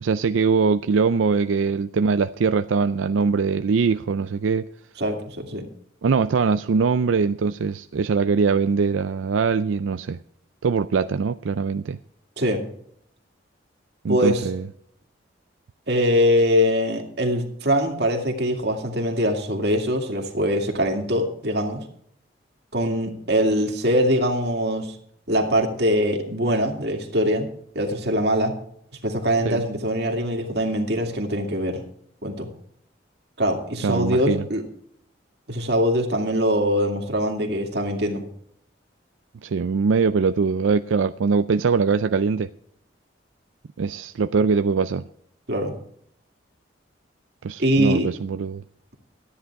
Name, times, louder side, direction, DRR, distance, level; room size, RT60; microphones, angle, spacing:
voice 1, 0.0-4.7 6.0-10.2 10.6-12.0 14.0-14.7 29.5-29.6 33.8-34.4 39.4-42.5 43.8-45.0 47.4-48.6, right 5 dB, 85° right, 11 dB, 0.4 m, -22 dB
voice 2, 5.0-5.6 12.4-12.6 14.1-14.5 15.9-21.8 22.7-25.0 25.3-27.5 27.7-28.5 29.0-31.8 32.2-32.5 33.4-34.6 35.5-38.2 45.5-45.7 47.6-48.1, equal, 55° right, 3 dB, 2.3 m, -22 dB
13.5 x 10.0 x 4.7 m, 0.68 s
head